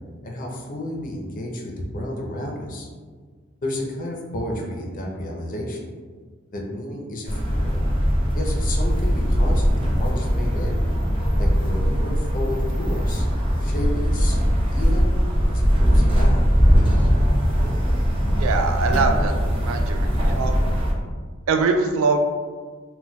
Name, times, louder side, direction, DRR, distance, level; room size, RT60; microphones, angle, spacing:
voice 1, 0.2-2.9 3.6-5.9 6.5-7.8 8.3-10.8 11.4-13.3 13.6-14.4 14.7-15.2 15.5-16.4 19.9-20.0, left 1 dB, 40° left, 0 dB, 0.5 m, -32 dB
sound 1, 7.3-20.9, equal, 25° right, 0.6 m, -20 dB
voice 2, 18.4-19.3 19.6-20.6 21.5-22.2, right 4 dB, 75° right, 6 dB, 0.3 m, -22 dB
2.2 x 2.1 x 3.8 m, 1.5 s
head